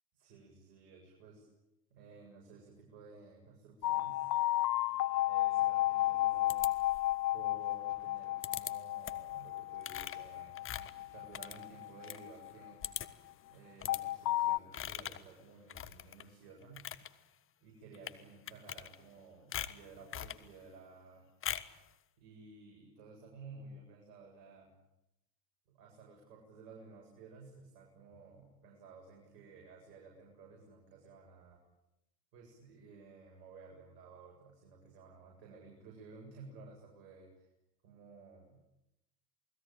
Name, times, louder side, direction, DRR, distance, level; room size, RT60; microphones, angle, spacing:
voice 1, 0.1-1.5 1.9-4.3 5.2-6.6 7.3-12.8 13.5-16.9 17.6-21.2 22.2-24.7 25.7-31.6 32.3-37.5 37.8-38.6, right 4 dB, 55° right, 0 dB, 7.9 m, -55 dB
sound 1, 3.8-12.9 13.9-14.6, left 16 dB, 75° left, 0.9 m, -33 dB
sound 2, 6.5-7.2 8.4-8.7 9.0-9.3 9.8-12.2 12.5-12.6 12.8-13.3 13.8-14.0 14.7-15.3 15.7-16.3 16.6-17.1 17.9-18.2 18.5-19.2 19.5-20.4 21.4-21.8, left 10 dB, 25° left, 1.5 m, -42 dB
28.5 x 20.0 x 9.2 m, 0.89 s
hypercardioid pair, 100°, 50 cm